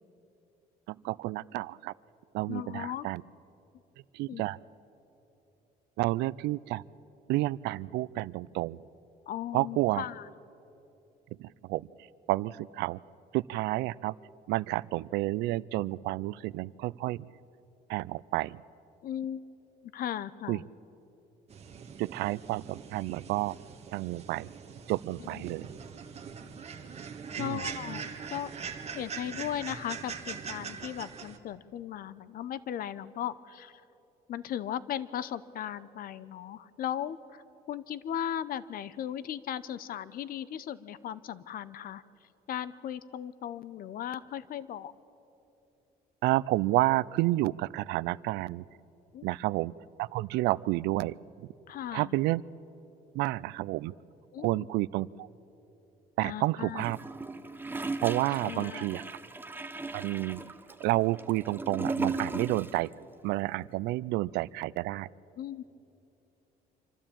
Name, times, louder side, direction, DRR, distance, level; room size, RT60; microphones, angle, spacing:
voice 1, 0.9-1.9 2.3-3.2 4.1-4.6 6.0-6.8 7.3-8.8 9.5-10.0 11.4-11.9 12.3-13.0 13.3-14.1 14.5-17.3 17.9-18.6 20.5-20.6 22.0-23.5 23.9-24.5 24.9-25.7 27.4-27.6 46.2-48.6 49.2-49.7 50.0-51.1 51.9-52.4 53.1-53.9 54.4-55.3 56.2-57.0 58.0-59.0 59.9-60.4 60.8-62.9 63.2-65.1, right 18 dB, 85° right, 20 dB, 0.4 m, -30 dB
voice 2, 2.5-3.1 4.3-4.4 9.3-10.3 19.0-19.4 19.8-20.6 25.2-25.5 27.4-28.5 28.9-33.8 34.3-37.4 37.7-42.0 42.5-44.9 49.1-49.3 51.7-52.1 54.3-54.7 56.2-56.9 58.4-58.9 65.4-65.6, left 10 dB, 60° left, 17 dB, 0.7 m, -37 dB
sound 1, 21.5-31.4, right 6 dB, 40° right, 1.5 m, -42 dB
Gurgling / Toilet flush, 56.8-62.9 63.1-63.2, right 3 dB, 10° right, 0.9 m, -36 dB
26.0 x 12.5 x 8.8 m, 2.9 s
cardioid pair, 110°, 17 cm